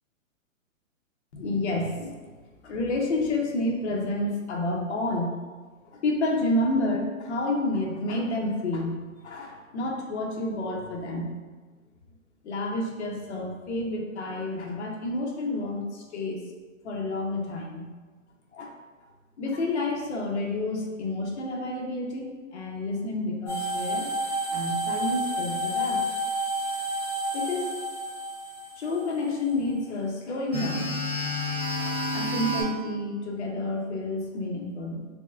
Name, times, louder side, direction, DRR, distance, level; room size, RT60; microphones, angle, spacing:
voice 1, 1.3-2.3 2.6-5.3 5.8-11.3 12.4-16.4 16.8-17.9 18.5-18.7 19.4-24.1 24.5-26.0 27.3-27.7 28.8-30.9 31.8-35.0, left 2 dB, 55° left, 0 dB, 0.8 m, -29 dB
sound 1, 23.5-29.5 30.5-32.6, equal, 5° left, 1.2 m, -30 dB
6.2 x 2.1 x 2.5 m, 1.4 s
hypercardioid pair, 175°, 41 cm